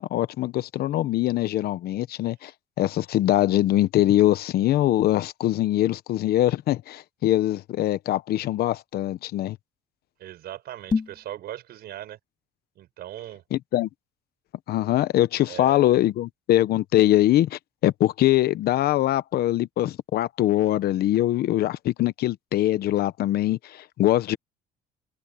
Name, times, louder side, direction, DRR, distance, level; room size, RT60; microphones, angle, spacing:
voice 1, 0.0-2.5 2.8-9.6 13.5-13.9 14.7-24.4, left 14 dB, 65° left, 0.9 m, -23 dB
voice 2, 10.2-12.2 12.8-13.4 15.5-15.8, right 13 dB, 70° right, 5.4 m, -39 dB
sound 1, 10.8-11.3, left 5 dB, 25° left, 1.9 m, -27 dB
cardioid pair, 110°, 17 cm